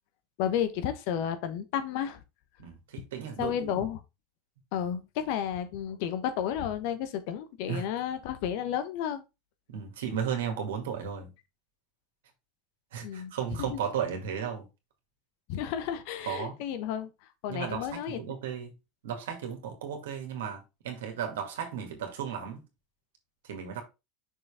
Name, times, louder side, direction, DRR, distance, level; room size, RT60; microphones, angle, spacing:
voice 1, 0.4-2.2 3.4-4.0 4.7-9.2 13.0-13.3 13.6-13.9 15.5-17.1 17.4-18.2, left 9 dB, 65° left, 1.0 m, -32 dB
voice 2, 2.6-3.8 7.7-7.8 9.7-11.3 12.9-14.6 16.3-16.5 17.5-18.7 19.0-22.6 23.5-23.8, right 8 dB, 75° right, 2.1 m, -35 dB
6.2 x 4.7 x 3.6 m
hypercardioid pair, 85°, 0 cm